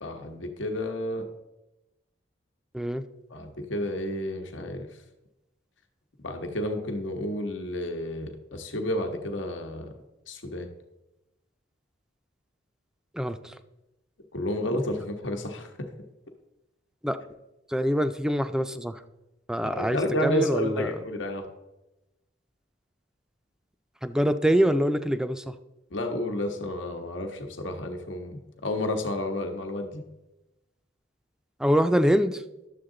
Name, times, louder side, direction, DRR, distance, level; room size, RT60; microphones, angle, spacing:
voice 1, 0.0-1.3 3.3-4.9 6.2-9.9 10.3-10.7 14.3-15.9 19.6-21.5 25.9-30.0, left 1 dB, 85° left, 4 dB, 1.1 m, -31 dB
voice 2, 17.7-19.0 19.5-20.9 24.0-25.4 31.6-32.4, equal, 5° right, 10 dB, 0.4 m, -24 dB
11.0 x 7.2 x 3.8 m, 0.97 s
head